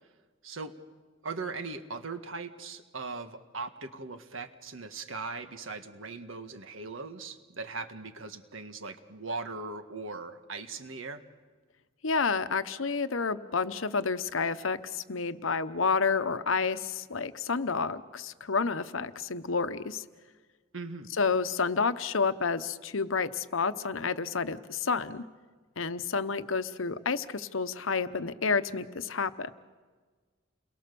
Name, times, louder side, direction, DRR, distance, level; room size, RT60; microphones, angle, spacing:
voice 1, 0.4-0.7 1.2-11.2 20.7-21.1, right 3 dB, 75° right, 8 dB, 1.7 m, -39 dB
voice 2, 12.0-20.0 21.1-25.2 25.8-29.5, left 5 dB, 75° left, 12 dB, 1.0 m, -30 dB
29.5 x 22.5 x 6.9 m, 1.4 s
head